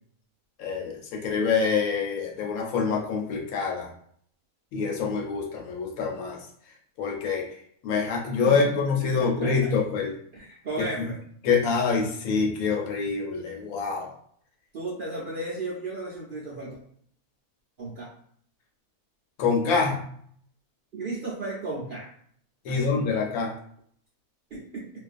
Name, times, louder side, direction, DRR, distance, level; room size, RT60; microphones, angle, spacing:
voice 1, 0.6-3.9 4.7-6.5 7.0-7.5 7.8-10.1 11.0-11.1 11.4-14.1 19.4-20.1 22.6-23.5, left 5 dB, 80° left, 0 dB, 1.0 m, -26 dB
voice 2, 8.4-8.8 9.2-9.5 10.3-11.2 14.7-16.7 17.8-18.1 20.9-22.1 22.7-23.1 24.5-24.9, right 2 dB, 60° right, -5 dB, 0.5 m, -34 dB
2.4 x 2.3 x 2.4 m, 0.63 s
omnidirectional pair, 1.4 m